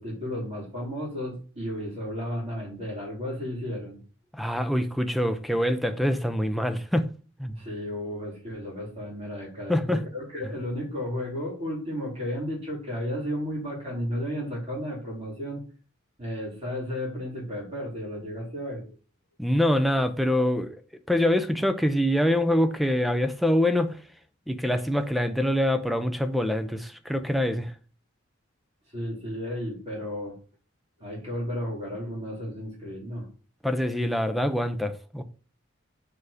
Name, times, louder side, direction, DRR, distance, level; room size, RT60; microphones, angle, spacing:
voice 1, 0.0-4.0 7.5-15.6 16.2-18.8 28.9-30.4 31.0-33.3, equal, 30° right, 3.2 m, -33 dB
voice 2, 4.3-7.1 7.4-7.6 9.7-10.0 19.4-20.8 21.1-24.0 24.5-27.7 33.6-35.2, left 1 dB, ahead, 0.4 m, -25 dB
4.7 x 4.7 x 4.9 m
head